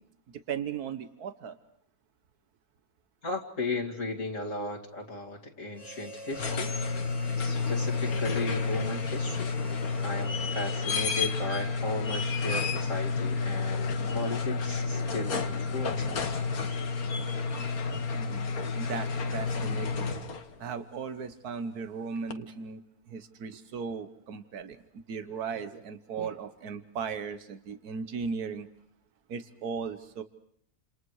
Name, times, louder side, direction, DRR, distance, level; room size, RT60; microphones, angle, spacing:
voice 1, 0.5-1.6 18.1-20.1 20.6-22.8 23.1-24.8 25.1-28.7 29.3-30.2, right 6 dB, 90° right, 9 dB, 1.7 m, -37 dB
voice 2, 3.2-6.7 7.4-9.5 10.0-16.3, left 2 dB, 55° left, -1 dB, 2.7 m, -36 dB
Harmonica, 5.7-11.5, right 1 dB, 10° right, 1.7 m, -46 dB
sound 1, 6.2-20.6 22.3-22.4, left 4 dB, 75° left, 1.9 m, -30 dB
29.5 x 28.0 x 4.8 m, 0.69 s
omnidirectional pair, 1.6 m